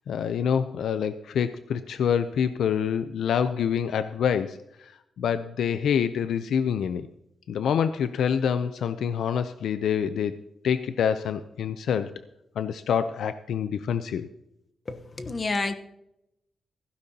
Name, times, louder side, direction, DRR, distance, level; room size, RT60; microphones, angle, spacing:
voice 1, 0.1-4.9 5.2-7.1 7.5-10.3 10.6-12.1 12.6-14.3, left 7 dB, 80° left, 11 dB, 0.5 m, -26 dB
voice 2, 14.9-15.7, left 3 dB, 30° left, 9 dB, 1.0 m, -29 dB
15.5 x 15.0 x 2.9 m, 0.85 s
wide cardioid pair, 150°, 0 cm